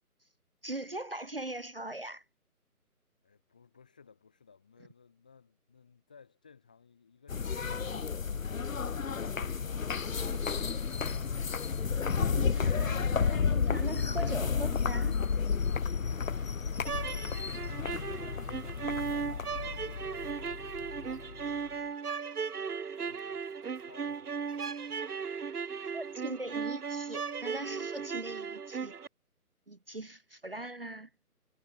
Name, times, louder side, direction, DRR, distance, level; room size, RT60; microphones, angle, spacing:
voice 1, 0.6-2.2 12.2-15.2 25.9-28.9 29.7-31.1, right 2 dB, 40° right, 0.6 m, -40 dB
voice 2, 3.2-8.9 16.1-19.3 19.7-20.3 20.7-21.8 23.0-24.7 28.0-28.1, left 6 dB, 5° left, 1.0 m, -60 dB
sound 1, 7.3-21.7, left 6 dB, 60° left, 1.0 m, -32 dB
sound 2, 10.1-26.4, right 28 dB, 10° right, 3.7 m, -65 dB
sound 3, 16.8-29.1, right 6 dB, 75° right, 1.1 m, -37 dB
figure-of-eight pair, 160°, 46 cm